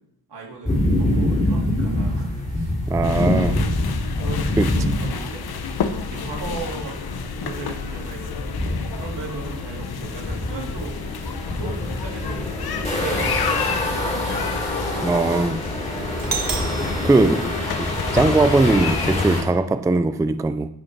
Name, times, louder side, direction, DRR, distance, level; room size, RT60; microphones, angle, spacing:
voice 1, 0.3-3.0 4.2-5.5 6.0-8.5 8.9-16.3 16.7-17.2, right 3 dB, 80° right, -3 dB, 3.3 m, -37 dB
sound 1, 0.6-19.4, left 1 dB, 15° left, 2.6 m, -26 dB
voice 2, 2.9-3.6 4.6-4.7 15.0-15.6 17.0-17.5 17.8-20.7, right 3 dB, 10° right, 10 dB, 0.3 m, -20 dB
sound 2, 3.0-19.4, left 6 dB, 65° left, 0.8 m, -31 dB
Doorbell, 16.2-18.2, right 5 dB, 55° right, 1.4 m, -32 dB
13.0 x 5.2 x 4.6 m, 0.75 s
wide cardioid pair, 120°, 41 cm